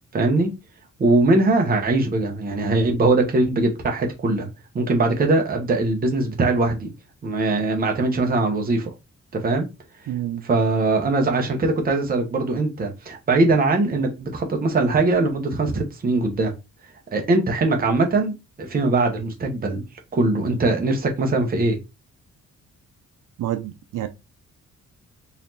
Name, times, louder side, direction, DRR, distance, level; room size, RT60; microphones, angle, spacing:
voice 1, 0.1-0.5 1.0-4.5 4.7-6.9 7.2-8.9 9.3-9.7 10.4-16.5 17.1-19.8 20.1-21.8, right 2 dB, 30° right, 0.8 m, -21 dB
voice 2, 10.1-10.4 23.4-24.1, right 12 dB, 80° right, 0.5 m, -28 dB
4.0 x 3.0 x 2.7 m
wide cardioid pair, 175°, 31 cm